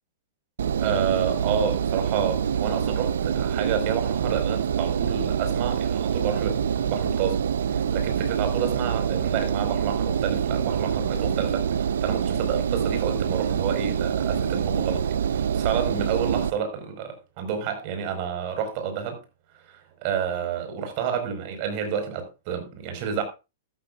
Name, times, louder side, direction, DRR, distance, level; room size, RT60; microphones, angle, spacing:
Engine, 0.6-16.5, right 8 dB, 90° right, 0.7 m, -26 dB
voice 1, 0.8-15.0 15.3-19.2 19.7-23.2, right 7 dB, 40° right, 5.0 m, -30 dB
13.5 x 13.5 x 2.5 m
hypercardioid pair, 155°, 0 cm